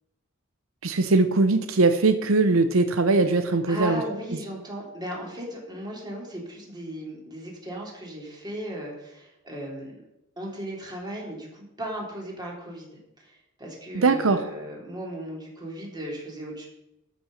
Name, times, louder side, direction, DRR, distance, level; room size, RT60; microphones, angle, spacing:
voice 1, 0.8-4.0 13.9-14.4, right 3 dB, 90° right, 10 dB, 0.7 m, -21 dB
voice 2, 3.2-10.0 10.4-16.7, right 1 dB, 20° right, -2 dB, 3.3 m, -37 dB
13.0 x 6.1 x 6.3 m, 0.87 s
head